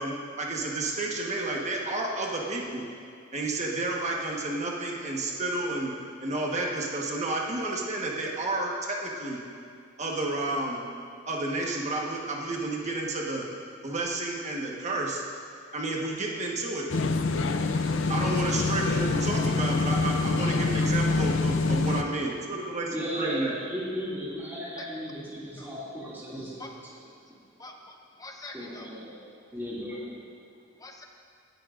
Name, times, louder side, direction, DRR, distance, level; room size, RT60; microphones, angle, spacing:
voice 1, 0.0-2.9 3.3-5.9 6.2-9.4 10.0-10.9 11.3-13.4 13.8-15.2 15.7-16.9 18.1-23.5, right 2 dB, 35° right, -1 dB, 1.3 m, -31 dB
sound 1, 16.9-22.0, left 3 dB, 65° left, 0.6 m, -25 dB
voice 2, 22.9-26.6 28.5-29.1 29.5-30.2, equal, 10° right, -8 dB, 2.5 m, -35 dB
voice 3, 27.6-28.9 30.8-31.0, left 2 dB, 20° left, 2 dB, 0.9 m, -44 dB
17.0 x 10.5 x 2.6 m, 2.4 s
head